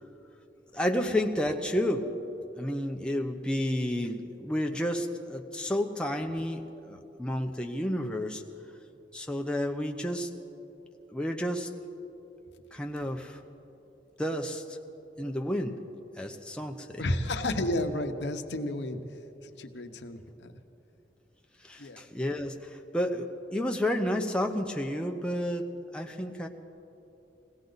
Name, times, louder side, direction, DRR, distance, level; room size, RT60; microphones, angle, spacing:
voice 1, 0.7-2.1 2.6-8.4 9.1-10.3 11.1-11.7 12.7-13.4 14.2-14.8 15.2-15.8 16.2-17.0 21.6-26.5, left 1 dB, 5° left, 2 dB, 0.7 m, -31 dB
voice 2, 17.0-19.0 19.6-20.5 21.8-22.0, left 1 dB, 85° left, 6 dB, 1.0 m, -31 dB
21.0 x 17.0 x 4.0 m, 2.9 s
head